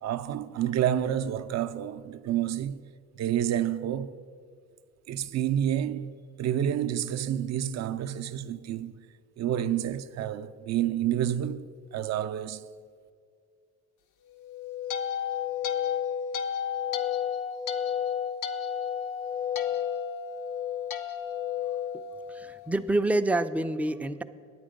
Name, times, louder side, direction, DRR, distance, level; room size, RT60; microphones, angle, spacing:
voice 1, 0.0-2.8 3.1-4.2 5.1-8.9 9.4-12.6, right 10 dB, 60° right, 0.5 m, -29 dB
sound 1, 14.4-22.7, left 8 dB, 80° left, 0.7 m, -31 dB
voice 2, 21.9-24.2, right 2 dB, 5° right, 0.3 m, -28 dB
9.7 x 8.5 x 5.1 m
cardioid pair, 90°, 30 cm